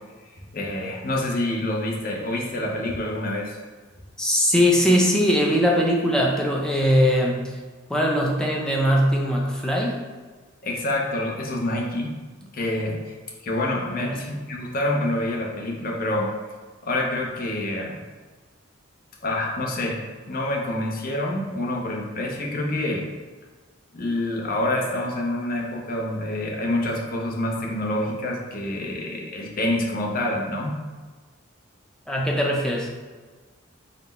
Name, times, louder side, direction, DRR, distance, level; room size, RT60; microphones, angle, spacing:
voice 1, 0.5-3.6 10.6-12.2 12.5-13.0 13.4-16.3 16.8-18.0 19.2-23.1 23.9-30.8, left 1 dB, 45° left, -1 dB, 0.6 m, -27 dB
voice 2, 4.2-7.6 7.9-10.0 13.8-14.2 32.1-32.9, equal, 5° left, -2 dB, 0.5 m, -21 dB
4.1 x 2.1 x 4.1 m, 1.4 s
head